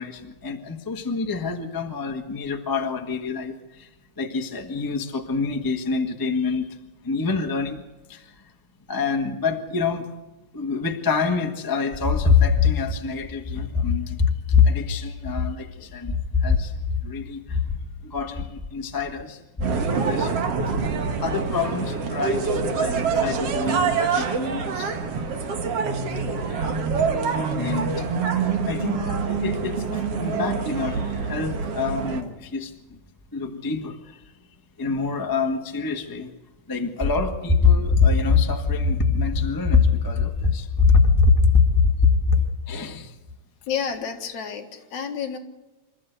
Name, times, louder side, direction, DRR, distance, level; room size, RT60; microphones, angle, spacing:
voice 1, 0.0-3.9 4.2-6.7 7.0-7.8 8.1-8.3 8.9-10.1 10.5-16.7 17.0-17.8 18.0-20.4 21.2-24.9 26.5-26.6 27.6-28.1 28.7-32.7 33.3-34.2 34.8-36.3 36.7-43.1, left 5 dB, 25° left, 4 dB, 0.4 m, -24 dB
sound 1, 19.6-32.2, right 5 dB, 55° right, 2.5 m, -25 dB
voice 2, 43.7-45.4, left 7 dB, 70° left, 4 dB, 3.0 m, -30 dB
27.0 x 13.5 x 8.2 m, 1.1 s
omnidirectional pair, 3.5 m